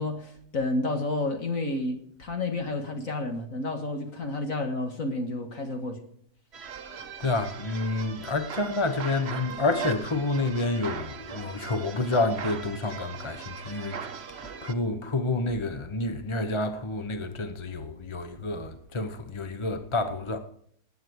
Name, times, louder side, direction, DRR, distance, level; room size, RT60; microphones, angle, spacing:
voice 1, 0.0-6.0, left 2 dB, 55° left, 2.0 m, -30 dB
sound 1, 6.5-14.7, right 6 dB, 45° right, 1.2 m, -39 dB
voice 2, 7.2-14.0 14.3-20.4, left 2 dB, 25° left, 0.8 m, -29 dB
20.0 x 9.5 x 4.8 m
omnidirectional pair, 1.7 m